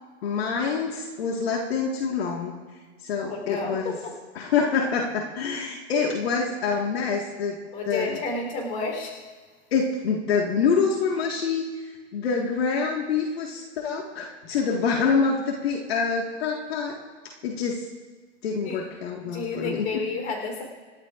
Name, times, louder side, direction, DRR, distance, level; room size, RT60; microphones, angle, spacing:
voice 1, 0.2-2.5 3.0-4.0 4.3-7.6 7.8-8.2 9.7-17.0 17.4-17.9 18.4-20.0, left 5 dB, 60° left, 0 dB, 1.8 m, -26 dB
voice 2, 3.2-4.1 7.7-9.1 18.6-18.8 19.3-20.6, left 3 dB, 20° left, 1 dB, 3.6 m, -31 dB
27.5 x 12.5 x 2.5 m, 1.5 s
hypercardioid pair, 165°, 34 cm